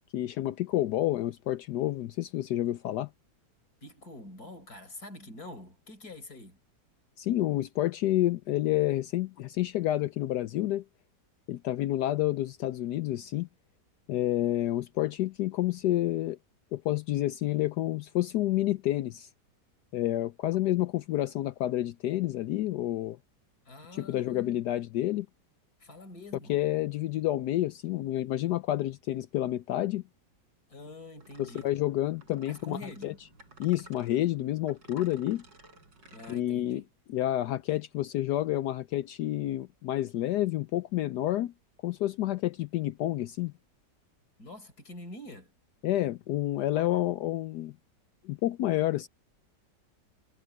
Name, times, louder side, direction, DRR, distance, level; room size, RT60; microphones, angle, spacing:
voice 1, 0.1-3.1 7.2-10.8 11.5-13.5 14.1-16.4 16.7-19.3 19.9-23.2 23.9-25.3 26.5-30.0 31.4-33.1 33.6-35.4 36.3-36.8 37.1-41.5 41.8-43.5 45.8-47.7 48.2-49.1, left 14 dB, 75° left, 1.1 m, -29 dB
voice 2, 3.8-6.6 23.7-24.6 25.8-26.6 30.7-31.7 32.5-33.2 36.1-36.9 44.4-45.5, left 1 dB, 55° left, 5.1 m, -46 dB
sound 1, 31.2-36.4, right 3 dB, 80° right, 6.9 m, -55 dB
omnidirectional pair, 1.9 m